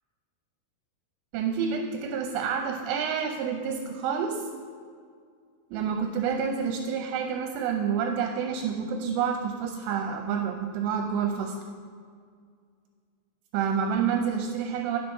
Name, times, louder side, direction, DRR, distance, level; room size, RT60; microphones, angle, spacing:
voice 1, 1.3-4.4 5.7-11.6 13.5-15.0, right 7 dB, 80° right, 3 dB, 2.6 m, -28 dB
8.9 x 6.8 x 5.3 m, 2.1 s
omnidirectional pair, 5.3 m